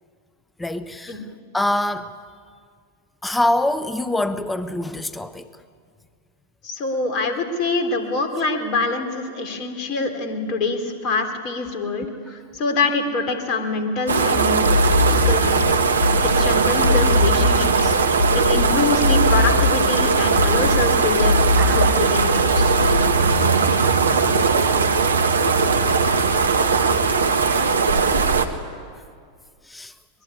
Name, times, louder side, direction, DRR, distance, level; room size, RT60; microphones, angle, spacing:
voice 1, 0.6-1.2 1.5-2.2 3.2-5.5 16.1-16.3 23.3-23.7 24.0-24.4 26.5-26.7 27.4-27.9 29.6-29.9, left 1 dB, 5° left, 0.9 m, -26 dB
voice 2, 6.6-14.6 15.0-15.6 16.3-18.0 18.3-22.7, left 3 dB, 40° left, 3.5 m, -25 dB
sound 1, 14.1-28.5, right 5 dB, 70° right, 1.5 m, -19 dB
sound 2, 14.6-23.3, left 3 dB, 65° left, 3.3 m, -21 dB
Clapping, 21.6-22.3, right 5 dB, 35° right, 6.5 m, -33 dB
23.5 x 22.0 x 9.9 m
figure-of-eight pair, 90°, 0 cm